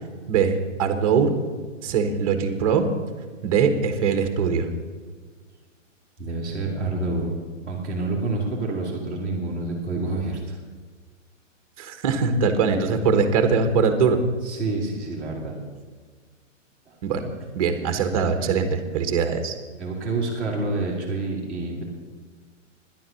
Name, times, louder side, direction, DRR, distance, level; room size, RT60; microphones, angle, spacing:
voice 1, 0.3-1.3 1.8-2.9 3.4-4.7 11.8-14.2 17.0-19.5, right 5 dB, 25° right, 7 dB, 1.2 m, -22 dB
voice 2, 6.2-7.3 7.6-10.6 14.4-15.6 16.9-17.0 19.8-21.8, right 2 dB, ahead, -13 dB, 1.9 m, -28 dB
11.0 x 10.5 x 6.8 m, 1.5 s
hypercardioid pair, 165°, 39 cm